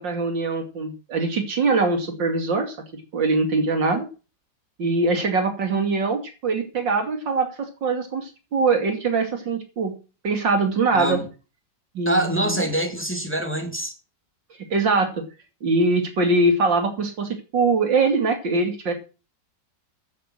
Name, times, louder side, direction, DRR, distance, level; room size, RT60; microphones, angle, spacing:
voice 1, 0.0-4.0 4.8-9.9 10.2-11.2 11.9-12.7 14.7-15.2 15.6-18.9, right 3 dB, 80° right, 3.2 m, -22 dB
voice 2, 10.9-11.3 12.0-13.9, right 1 dB, 5° left, 2.7 m, -25 dB
10.0 x 8.3 x 7.5 m
omnidirectional pair, 2.0 m